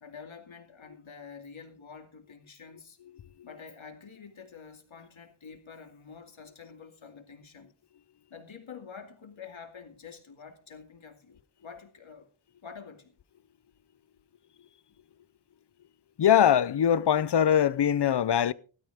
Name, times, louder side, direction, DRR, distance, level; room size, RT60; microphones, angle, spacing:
voice 1, 0.0-3.0 3.4-7.7 8.3-12.3 12.6-13.2, left 6 dB, 70° left, 2.6 m, -47 dB
voice 2, 16.2-18.5, left 9 dB, 55° left, 0.6 m, -22 dB
16.0 x 13.0 x 3.5 m
wide cardioid pair, 100°, 48 cm